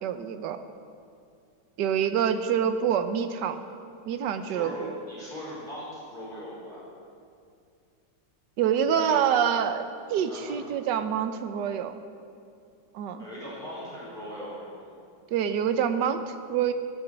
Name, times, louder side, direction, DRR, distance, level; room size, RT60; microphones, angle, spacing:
voice 1, 0.0-0.6 1.8-3.6 4.0-4.9 8.6-12.0 12.9-13.3 15.3-16.7, right 8 dB, 65° right, 9 dB, 1.3 m, -26 dB
voice 2, 4.4-6.8 8.9-9.2 10.3-10.7 13.2-14.8, equal, 25° left, -7 dB, 5.0 m, -40 dB
14.0 x 10.0 x 8.1 m, 2.4 s
omnidirectional pair, 2.2 m